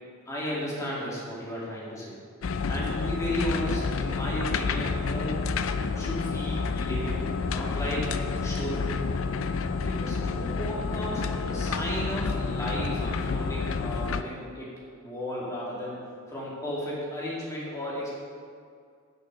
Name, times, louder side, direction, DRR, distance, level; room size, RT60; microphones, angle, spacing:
voice 1, 0.3-2.2 2.7-5.4 5.9-8.2 8.4-8.9 9.8-14.7 15.0-16.0 16.3-18.1, equal, 15° left, -6 dB, 2.4 m, -34 dB
sound 1, 2.4-14.2, left 4 dB, 70° left, 0.5 m, -29 dB
8.5 x 6.4 x 6.4 m, 2.2 s
head